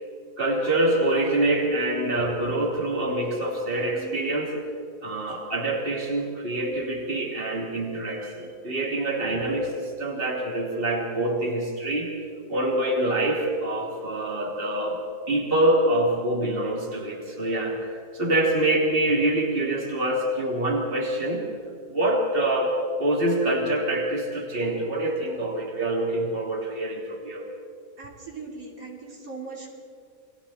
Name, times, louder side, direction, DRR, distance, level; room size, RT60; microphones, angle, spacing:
voice 1, 0.4-4.6 5.0-12.1 12.5-15.0 15.3-21.5 21.9-27.5, right 1 dB, 35° right, -2 dB, 3.3 m, -25 dB
voice 2, 28.0-29.7, right 4 dB, 65° right, -2 dB, 3.4 m, -39 dB
30.0 x 21.5 x 4.3 m, 2.3 s
omnidirectional pair, 1.6 m